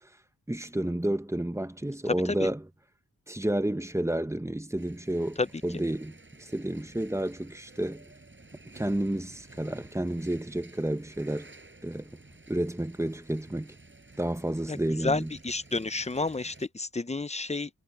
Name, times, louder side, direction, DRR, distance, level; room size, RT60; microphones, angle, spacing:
voice 1, 0.5-2.6 3.3-8.1 8.7-11.5 11.8-12.2 12.5-13.7 14.2-15.3, right 1 dB, 10° right, 0.9 m, -31 dB
sound 1, 4.8-16.7, right 2 dB, 30° right, 6.3 m, -53 dB
voice 2, 15.0-17.7, left 3 dB, 20° left, 0.6 m, -30 dB
wide cardioid pair, 105°, 36 cm